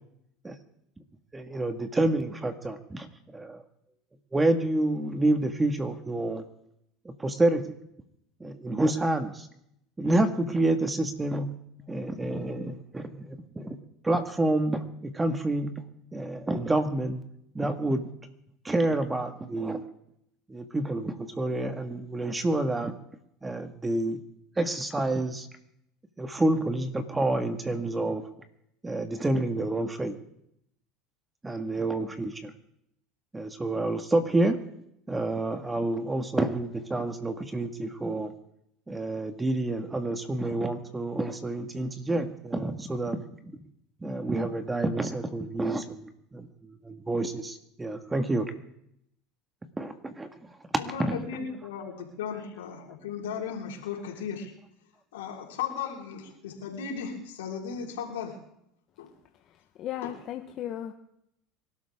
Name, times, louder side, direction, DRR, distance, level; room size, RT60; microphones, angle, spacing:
voice 1, 1.3-3.1 3.3-3.6 4.3-6.4 7.2-7.7 8.4-9.5 10.0-11.5 11.9-13.8 14.0-15.7 16.1-17.2 17.5-18.0 18.6-19.8 20.5-22.9 23.4-24.2 24.6-25.5 26.2-28.2 28.8-30.2 31.4-32.5 33.3-34.6 35.1-38.3 38.9-43.6 44.0-46.0 46.3-48.5 49.8-50.5 51.0-51.2, right 2 dB, 15° right, 7 dB, 1.8 m, -28 dB
voice 2, 50.8-54.5 55.1-58.4 59.0-59.1 60.0-60.1, left 7 dB, 90° left, -1 dB, 4.3 m, -36 dB
voice 3, 59.5-60.9, left 11 dB, 50° left, 4 dB, 1.2 m, -36 dB
24.5 x 12.5 x 3.7 m, 0.74 s
supercardioid pair, 100°, 0 cm